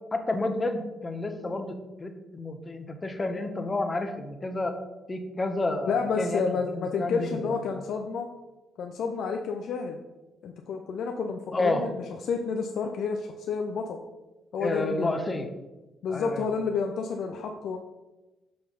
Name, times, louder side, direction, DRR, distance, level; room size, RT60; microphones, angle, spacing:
voice 1, 0.1-4.7 5.1-7.5 11.5-11.9 14.6-15.5 16.1-16.5, left 2 dB, 25° left, 6 dB, 1.0 m, -30 dB
voice 2, 5.8-8.3 8.8-10.0 10.4-14.0 14.5-15.2 16.0-17.8, left 5 dB, 70° left, 4 dB, 0.6 m, -30 dB
5.7 x 5.2 x 5.4 m, 1.1 s
cardioid pair, 90°, 0 cm